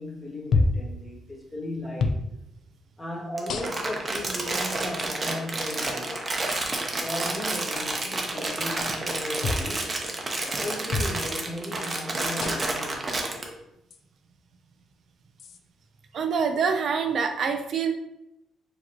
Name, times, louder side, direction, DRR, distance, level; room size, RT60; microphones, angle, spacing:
voice 1, 0.0-2.3 3.0-6.4 7.0-9.9 10.4-13.6, left 1 dB, 15° left, -2 dB, 1.2 m, -36 dB
sound 1, 0.5-0.9 2.0-2.2 3.5-4.0 5.0-5.1 6.5-6.7 9.4-9.7 10.9-11.2 12.4-12.8 13.9-14.0 15.4-15.6, left 3 dB, 65° left, 0.4 m, -27 dB
Crumpling crinkling, 3.4-13.4, right 2 dB, 30° right, 0.8 m, -30 dB
voice 2, 16.1-17.9, right 6 dB, 60° right, 5 dB, 0.4 m, -25 dB
4.9 x 2.9 x 2.9 m, 0.84 s
cardioid pair, 90°, 0 cm